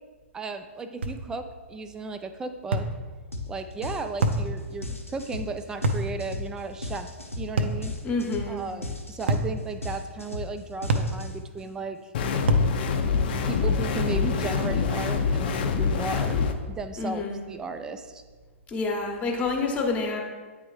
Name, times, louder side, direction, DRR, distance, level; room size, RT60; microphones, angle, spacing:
voice 1, 0.3-2.9 3.5-7.1 7.3-7.9 8.5-12.1 13.4-16.4 16.7-18.2, right 4 dB, 10° right, 8 dB, 0.3 m, -35 dB
sound 1, 1.0-1.2 2.7-3.0 4.2-4.5 5.8-6.1 7.6-7.8 9.3-9.5 10.9-11.2 12.5-12.7, right 2 dB, 55° right, 0.5 m, -24 dB
sound 2, 3.3-3.5 3.8-11.6, left 2 dB, 85° left, 0.8 m, -36 dB
voice 2, 8.0-8.6 17.0-17.4 18.7-20.2, left 3 dB, 20° left, 1 dB, 0.9 m, -28 dB
sound 3, 12.1-16.5, left 5 dB, 45° left, 0.5 m, -25 dB
9.0 x 3.4 x 3.2 m, 1.4 s
figure-of-eight pair, 110°, 7 cm